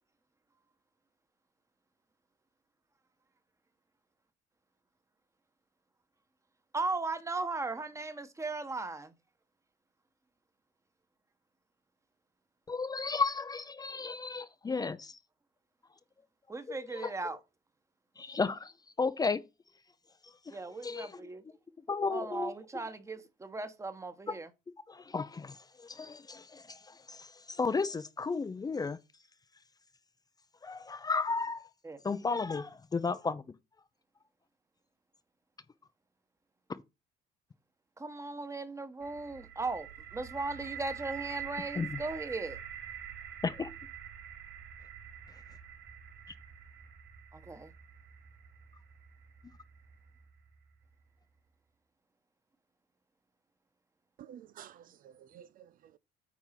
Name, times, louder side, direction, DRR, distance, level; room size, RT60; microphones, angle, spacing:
voice 1, 6.7-9.1 16.5-17.4 20.5-21.4 22.1-24.5 31.8-32.0 38.0-42.6 47.3-47.7, right 3 dB, 15° right, 1.2 m, -37 dB
voice 2, 12.7-15.2 16.7-17.1 18.2-18.7 19.0-19.4 20.5-20.6 20.8-21.2 21.9-22.5 24.9-29.0 30.6-31.7 32.0-33.6 36.7-36.8 41.8-42.0 43.4-43.7, left 4 dB, 20° left, 0.6 m, -34 dB
sound 1, 39.0-50.8, right 9 dB, 75° right, 2.1 m, -46 dB
voice 3, 54.2-56.0, right 10 dB, 55° right, 0.5 m, -52 dB
9.4 x 3.6 x 5.9 m
cardioid pair, 110°, 17 cm